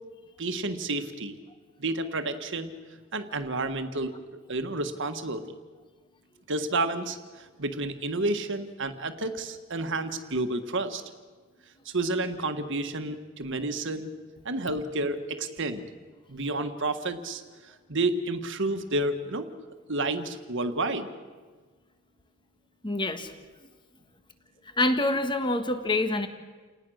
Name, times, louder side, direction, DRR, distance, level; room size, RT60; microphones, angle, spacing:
voice 1, 0.4-1.4 1.8-2.7 3.1-5.5 6.5-11.0 11.8-14.1 14.4-15.8 16.3-19.5 19.9-21.1, right 2 dB, 60° right, 8 dB, 1.6 m, -30 dB
voice 2, 22.8-23.3 24.8-26.3, left 2 dB, 25° left, 8 dB, 1.6 m, -26 dB
29.5 x 19.5 x 6.5 m, 1.4 s
head